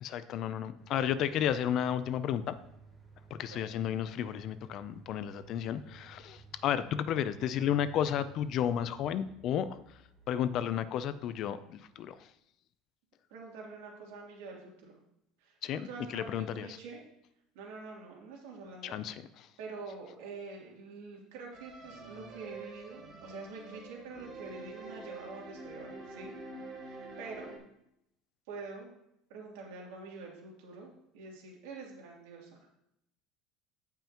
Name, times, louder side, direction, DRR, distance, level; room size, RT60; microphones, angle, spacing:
voice 1, 0.0-2.6 3.3-9.8 10.3-12.2 15.6-15.9 16.1-16.7 18.8-19.2, left 9 dB, 40° left, 14 dB, 0.5 m, -32 dB
sound 1, 0.8-12.2, right 4 dB, 10° right, 1.6 m, -56 dB
voice 2, 13.3-15.0 15.4-17.0 17.5-19.1 19.6-26.3 26.8-27.5 28.5-28.9 29.3-32.7, right 4 dB, 90° right, -2 dB, 2.9 m, -46 dB
sound 2, 21.5-27.6, right 3 dB, 35° right, 3.0 m, -46 dB
16.0 x 5.6 x 3.0 m, 0.78 s
cardioid pair, 165°, 0 cm